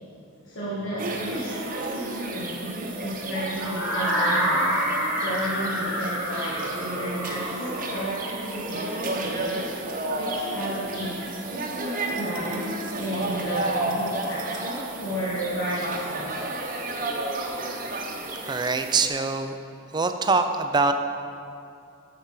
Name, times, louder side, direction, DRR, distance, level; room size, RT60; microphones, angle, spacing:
voice 1, 0.4-4.7 5.2-9.7 10.1-16.8, equal, 65° left, -8 dB, 1.6 m, -33 dB
sound 1, 1.0-19.1, right 2 dB, 40° right, 0.9 m, -32 dB
sound 2, 3.6-9.5, equal, 5° right, 1.4 m, -28 dB
voice 2, 18.4-19.5 19.9-20.9, right 4 dB, 20° right, 7 dB, 0.4 m, -23 dB
8.2 x 6.9 x 5.9 m, 2.5 s
head